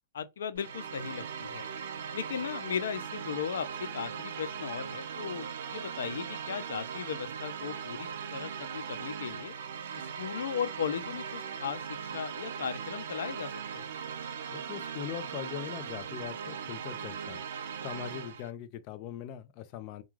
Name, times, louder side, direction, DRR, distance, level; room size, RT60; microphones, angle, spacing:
voice 1, 0.1-1.7 2.1-9.5 10.0-13.8, left 7 dB, 85° left, 0.5 m, -37 dB
sound 1, 0.5-18.5, right 7 dB, 65° right, 0.5 m, -39 dB
voice 2, 14.5-17.4 17.8-20.0, left 10 dB, 35° left, 0.4 m, -41 dB
2.3 x 2.2 x 3.1 m
supercardioid pair, 165°, 0 cm